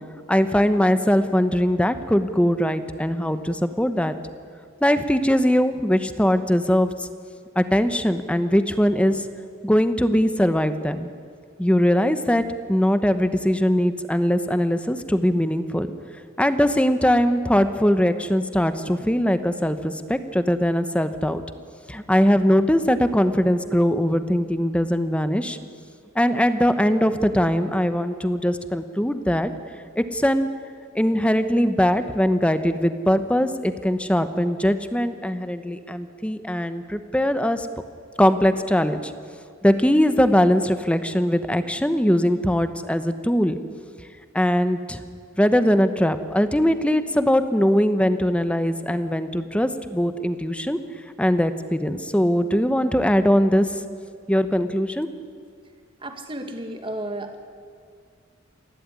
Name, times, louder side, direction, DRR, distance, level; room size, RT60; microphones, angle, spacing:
voice 1, 0.3-4.2 4.8-7.1 7.6-9.2 9.6-11.1 11.6-12.4 12.7-15.9 16.4-21.4 21.9-25.6 26.1-29.5 30.0-30.5 30.9-37.7 38.2-39.0 39.6-43.6 44.3-45.0 45.4-50.8 51.2-53.7 54.3-55.1, equal, 5° left, 10 dB, 1.0 m, -21 dB
voice 2, 56.0-57.4, right 1 dB, 25° right, 5 dB, 2.0 m, -33 dB
28.5 x 12.0 x 9.9 m, 2.2 s
head